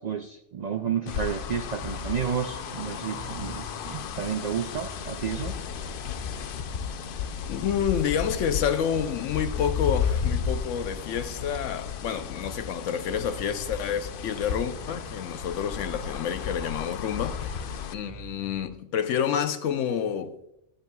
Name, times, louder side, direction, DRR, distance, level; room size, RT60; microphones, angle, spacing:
voice 1, 0.0-5.6 12.1-12.2, right 7 dB, 75° right, 0.3 m, -31 dB
sound 1, 1.1-17.9, left 7 dB, 60° left, 0.6 m, -33 dB
sound 2, 1.7-18.6, equal, 40° right, 4.1 m, -48 dB
voice 2, 7.5-17.4 17.9-20.4, left 8 dB, 80° left, 1.0 m, -29 dB
12.0 x 8.9 x 2.3 m
omnidirectional pair, 1.3 m